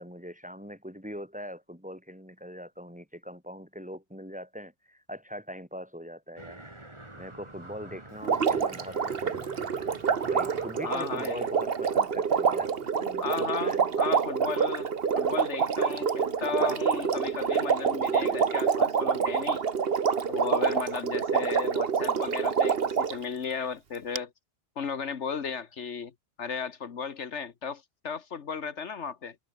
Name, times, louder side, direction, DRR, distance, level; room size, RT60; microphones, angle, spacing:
voice 1, 0.0-6.6 7.1-9.5 9.7-9.9 10.3-12.7 13.0-13.9, equal, 5° right, 5.4 m, -42 dB
sound 1, 6.4-12.9, right 1 dB, 25° right, 2.9 m, -48 dB
Water, 8.2-23.2 24.2-24.3, right 6 dB, 55° right, 1.4 m, -27 dB
voice 2, 10.8-11.5 13.2-19.6 20.3-24.3 24.8-26.1 26.4-29.3, left 6 dB, 75° left, 1.6 m, -35 dB
omnidirectional pair, 1.2 m